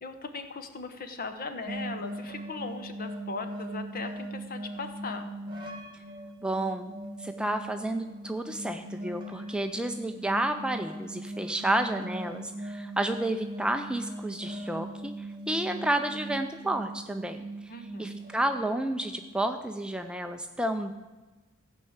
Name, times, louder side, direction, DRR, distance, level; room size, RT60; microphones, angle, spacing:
voice 1, 0.0-5.3 17.7-18.2, left 3 dB, 45° left, 8 dB, 1.1 m, -38 dB
sound 1, 1.7-19.3, right 1 dB, 20° right, 1.6 m, -40 dB
voice 2, 6.4-6.9 7.2-17.7 18.0-20.9, right 1 dB, 5° right, 6 dB, 0.4 m, -31 dB
15.0 x 5.4 x 7.9 m, 1.2 s
head